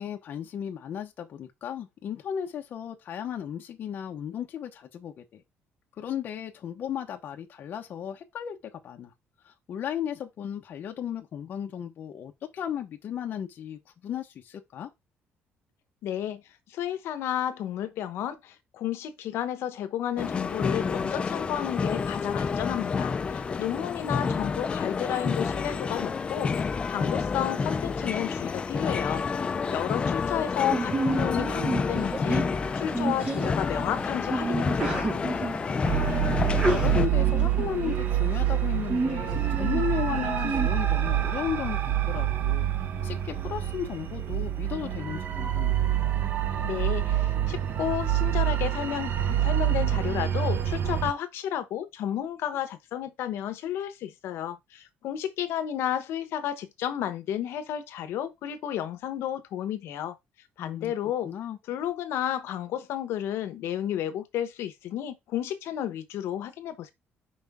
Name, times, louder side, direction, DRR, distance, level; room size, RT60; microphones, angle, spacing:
voice 1, 0.0-5.4 6.0-9.1 9.4-14.9 23.6-24.3 35.8-36.3 36.7-42.7 43.0-45.8 60.6-60.9 61.2-61.6, left 9 dB, 50° left, 0.9 m, -35 dB
voice 2, 16.0-16.4 16.7-29.2 29.7-32.4 32.8-35.1 46.6-60.2 60.6-61.3 61.7-66.9, left 10 dB, 75° left, 1.0 m, -32 dB
sound 1, 20.2-37.1, left 5 dB, 25° left, 0.4 m, -29 dB
Sneeze, 30.7-40.7, right 3 dB, 25° right, 1.8 m, -32 dB
sound 2, 35.8-51.1, right 11 dB, 50° right, 0.8 m, -27 dB
5.3 x 5.2 x 3.6 m
cardioid pair, 165°, 4 cm